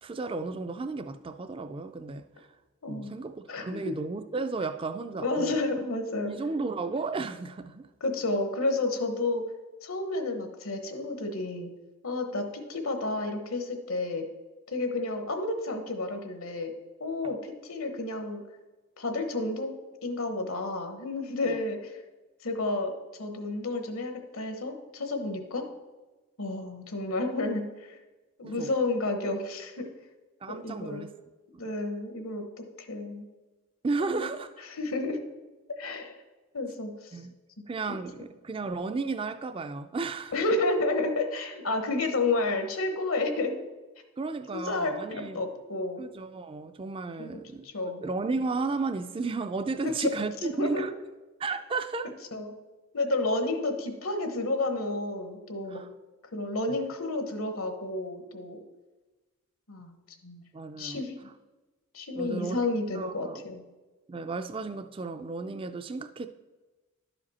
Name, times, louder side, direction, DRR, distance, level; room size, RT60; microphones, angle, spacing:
voice 1, 0.0-2.5 2.9-5.6 6.2-7.9 21.4-21.6 28.4-28.7 30.4-31.1 33.8-34.5 37.1-37.3 37.7-40.3 44.2-45.4 46.0-47.7 48.0-50.9 51.4-52.1 55.7-55.9 56.7-56.8 60.5-61.3 62.1-62.6 62.9-63.4 64.1-66.3, right 3 dB, 25° right, 0.3 m, -33 dB
voice 2, 2.8-3.1 3.5-3.8 5.2-6.3 8.0-9.4 9.8-11.7 12.0-14.3 14.7-16.7 17.0-18.4 19.0-19.7 20.0-22.0 22.4-22.9 23.2-25.6 26.4-28.0 28.4-29.9 30.5-31.0 31.6-33.2 34.0-34.2 34.7-35.2 35.8-36.2 36.5-37.2 38.2-38.3 40.3-43.5 44.5-44.9 45.3-46.0 47.2-48.0 49.8-50.1 50.4-50.8 52.3-52.5 52.9-55.8 56.3-58.6 59.7-60.4 60.8-61.1 61.9-63.6, left 2 dB, 75° left, 1.0 m, -31 dB
11.5 x 5.0 x 4.2 m
head